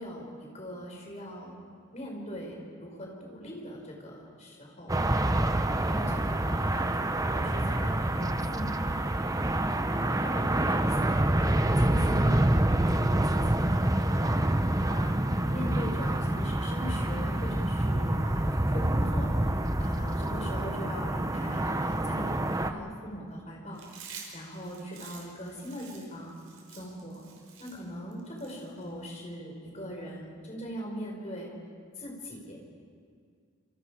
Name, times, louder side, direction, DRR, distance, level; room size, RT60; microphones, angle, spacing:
voice 1, 0.0-1.6 1.9-5.0 5.5-9.1 9.6-12.5 12.9-14.4 14.8-15.2 15.5-19.5 19.8-23.8 24.3-26.3 26.8-27.2 27.6-31.5 32.0-32.6, equal, 30° left, -1 dB, 5.1 m, -41 dB
sound 1, 4.9-22.7, right 1 dB, 15° right, 0.8 m, -27 dB
Chewing mastication, 23.7-29.2, right 6 dB, 70° right, 5.4 m, -49 dB
27.5 x 27.5 x 5.0 m, 2.1 s
head